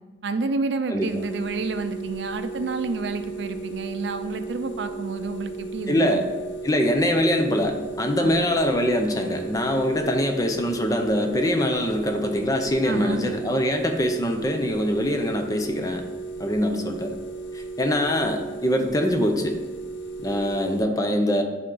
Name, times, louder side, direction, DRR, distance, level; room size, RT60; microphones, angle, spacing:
voice 1, 0.2-6.3 8.2-8.4 12.8-13.3, right 3 dB, 70° right, 9 dB, 0.4 m, -29 dB
sound 1, 1.0-20.8, right 3 dB, 85° left, 0.6 m, -36 dB
voice 2, 5.9-6.3 6.6-16.0 16.4-17.2 17.5-19.6 20.2-21.4, equal, 20° left, 4 dB, 0.6 m, -23 dB
9.3 x 3.7 x 3.9 m, 1.3 s
head